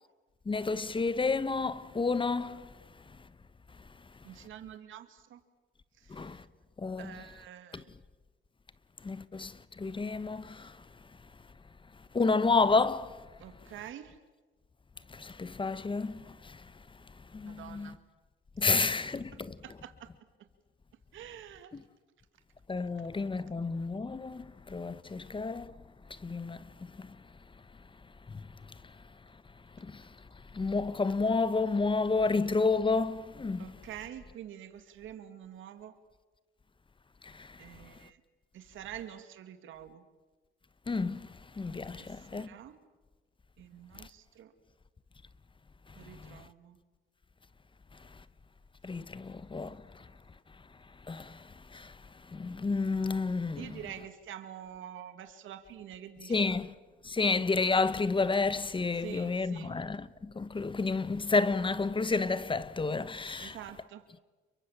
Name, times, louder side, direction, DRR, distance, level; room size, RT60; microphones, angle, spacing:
voice 1, 0.5-2.6 6.2-6.4 6.8-7.2 9.0-9.5 9.8-10.5 12.1-13.1 15.2-16.1 17.3-17.9 18.6-19.5 22.7-24.4 24.7-25.7 26.2-26.6 30.6-33.6 40.9-41.2 41.6-42.5 48.8-49.7 51.1-51.2 52.3-53.7 56.3-56.7 57.1-60.1 60.4-63.5, left 4 dB, 25° left, 1.1 m, -30 dB
voice 2, 4.2-5.4 6.0-6.3 7.0-7.9 13.4-14.2 17.5-18.0 18.9-19.0 19.6-20.1 21.1-21.7 33.6-35.9 37.6-38.2 38.5-40.0 42.0-42.8 43.6-44.5 46.0-46.8 53.6-56.6 59.0-59.8 63.4-64.0, right 10 dB, 80° right, 2.3 m, -47 dB
29.5 x 23.5 x 7.3 m
cardioid pair, 90°, 20 cm